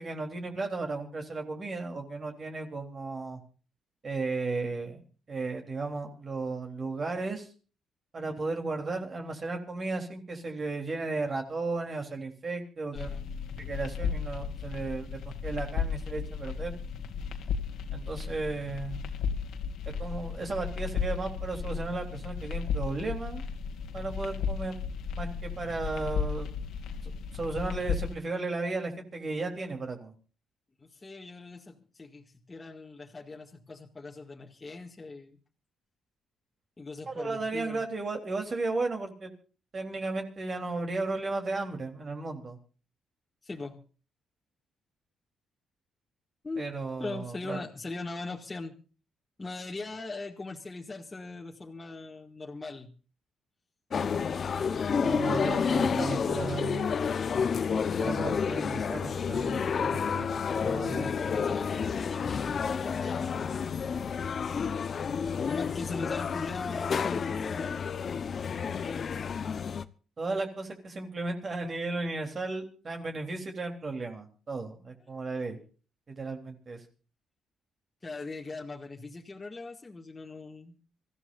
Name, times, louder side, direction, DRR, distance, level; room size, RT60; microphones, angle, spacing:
voice 1, 0.0-3.4 4.0-5.0 5.3-7.5 8.1-13.1 13.6-16.7 17.9-19.0 19.8-23.4 23.9-24.8 25.2-26.5 27.0-30.1 37.1-39.3 39.7-42.6 46.6-47.6 55.0-56.9 58.0-60.3 60.6-61.1 70.2-75.6 76.1-76.8, right 3 dB, 40° right, 4 dB, 3.4 m, -34 dB
voice 2, 12.9-13.3 30.8-35.4 36.8-37.8 43.4-43.8 46.4-46.7 47.0-48.7 49.4-52.9 60.9-63.8 65.5-67.8 78.0-80.8, left 3 dB, 25° left, 0 dB, 2.0 m, -40 dB
sound 1, 13.0-28.1, left 6 dB, 80° left, 2.3 m, -34 dB
sound 2, 53.9-69.8, left 6 dB, 50° left, 0.9 m, -30 dB
26.0 x 14.5 x 2.6 m, 0.37 s
cardioid pair, 90°, 0 cm